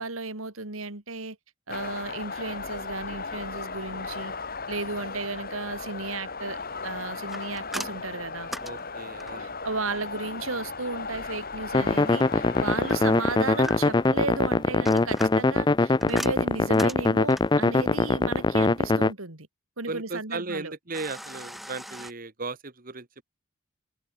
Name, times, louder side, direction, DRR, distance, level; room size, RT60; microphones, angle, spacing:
voice 1, 0.0-1.4 1.7-4.3 4.7-8.5 9.4-19.5 19.8-20.7, right 3 dB, 75° right, 3.0 m, -34 dB
sound 1, 1.7-16.5, left 4 dB, 45° left, 5.6 m, -37 dB
sound 2, 7.3-9.5 12.9-14.1 14.6-17.6 20.9-22.1, equal, ahead, 3.6 m, -39 dB
voice 2, 8.6-9.5 19.9-23.2, right 3 dB, 40° right, 1.7 m, -36 dB
sound 3, 11.7-19.1, left 2 dB, 20° left, 0.4 m, -22 dB
head